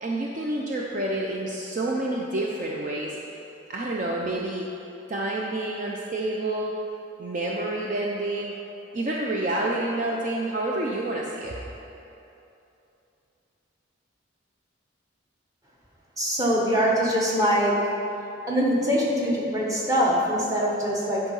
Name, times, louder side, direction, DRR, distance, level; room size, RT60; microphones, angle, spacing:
voice 1, 0.0-3.4 3.7-4.7 5.1-6.8 7.2-8.5 8.9-11.6, right 1 dB, 40° right, -2 dB, 0.5 m, -28 dB
voice 2, 16.2-17.8 18.5-21.2, equal, 20° right, -4 dB, 1.2 m, -23 dB
10.0 x 4.6 x 5.4 m, 2.9 s
head